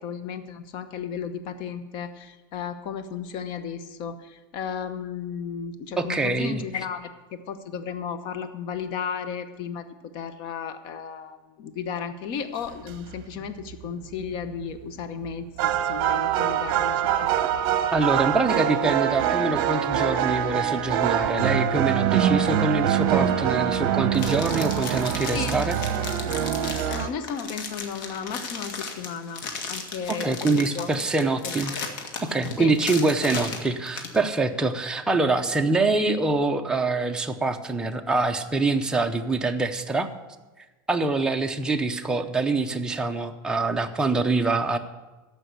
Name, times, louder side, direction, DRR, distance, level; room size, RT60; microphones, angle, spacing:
voice 1, 0.0-9.9 10.1-17.4 25.3-25.6 26.9-31.0 31.4-31.6 32.6-32.8, left 7 dB, 45° left, 10 dB, 0.9 m, -34 dB
voice 2, 6.0-6.6 17.9-25.8 30.1-31.7 32.2-40.1 40.9-44.8, right 3 dB, 5° right, 3 dB, 0.7 m, -25 dB
sound 1, 12.9-13.2 13.7-13.8 15.3-15.4 15.6-27.1, right 10 dB, 55° right, 1.0 m, -24 dB
sound 2, 24.1-34.2, left 5 dB, 75° left, 1.9 m, -35 dB
14.0 x 5.6 x 8.2 m, 1.2 s
supercardioid pair, 150°, 11 cm